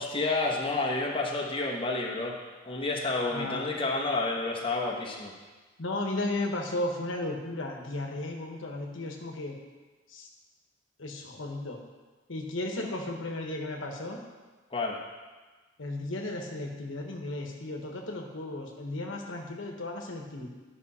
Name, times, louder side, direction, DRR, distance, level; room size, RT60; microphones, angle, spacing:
voice 1, 0.0-2.4 2.6-5.3 14.7-15.0, left 3 dB, 30° left, -2 dB, 1.2 m, -30 dB
voice 2, 3.3-3.7 5.8-9.5 10.1-10.3 11.0-11.8 12.3-14.2 15.8-20.5, left 2 dB, 80° left, 1 dB, 1.2 m, -34 dB
11.5 x 5.8 x 4.2 m, 1.3 s
head